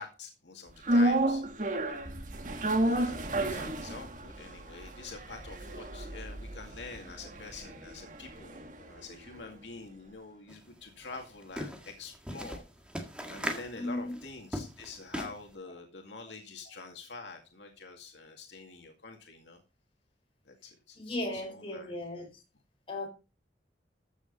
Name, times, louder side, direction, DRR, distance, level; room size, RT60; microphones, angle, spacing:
voice 1, 0.0-1.8 2.8-12.6 13.3-19.6 20.5-21.9, left 3 dB, 80° left, 2.2 m, -46 dB
sound 1, 0.8-9.1 9.4-9.5, right 1 dB, 45° right, 1.5 m, -31 dB
voice 2, 3.5-3.8 13.7-14.2 20.9-22.4 22.9-23.1, left 1 dB, 30° left, 4.7 m, -37 dB
sound 2, 10.5-10.6 10.9-15.5, equal, 5° right, 1.7 m, -39 dB
14.0 x 7.3 x 4.0 m
head